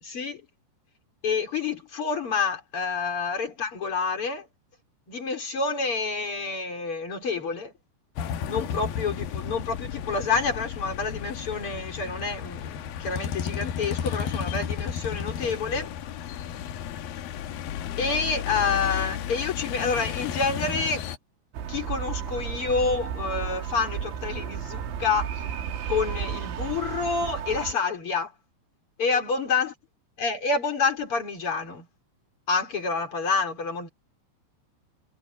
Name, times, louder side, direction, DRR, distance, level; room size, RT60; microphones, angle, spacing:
voice 1, 0.0-0.5 1.2-4.5 5.1-7.7 8.4-15.9 18.0-21.0 21.7-25.3 25.9-28.3 29.0-29.7 30.2-31.9 32.5-33.9, left 4 dB, 30° left, 4.8 m, -28 dB
sound 1, 8.2-21.2, left 9 dB, 70° left, 2.5 m, -33 dB
sound 2, 21.5-27.7, right 8 dB, 80° right, 4.6 m, -33 dB
omnidirectional pair, 5.2 m